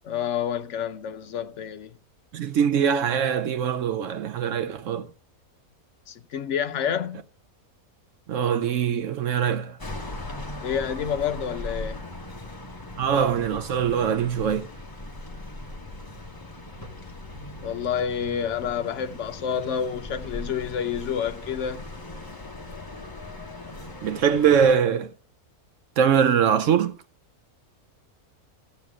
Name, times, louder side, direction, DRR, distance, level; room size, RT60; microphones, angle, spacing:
voice 1, 0.0-2.0 6.1-7.2 10.6-12.1 17.6-21.9, left 8 dB, 60° left, 0.9 m, -29 dB
voice 2, 2.3-5.1 8.3-9.8 13.0-14.7 24.0-25.1 26.0-27.0, right 7 dB, 65° right, 0.9 m, -22 dB
sound 1, 9.8-24.7, left 2 dB, 15° left, 1.0 m, -39 dB
13.5 x 7.9 x 3.6 m
omnidirectional pair, 1.6 m